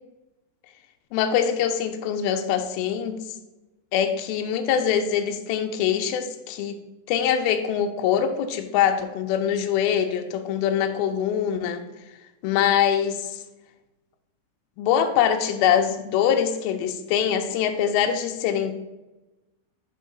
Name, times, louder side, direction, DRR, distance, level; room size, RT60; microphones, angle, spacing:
voice 1, 1.1-3.4 3.9-6.8 7.1-11.8 12.4-13.4 14.8-18.7, left 8 dB, 85° left, 6 dB, 2.1 m, -23 dB
5.9 x 4.6 x 5.5 m, 1.0 s
omnidirectional pair, 4.9 m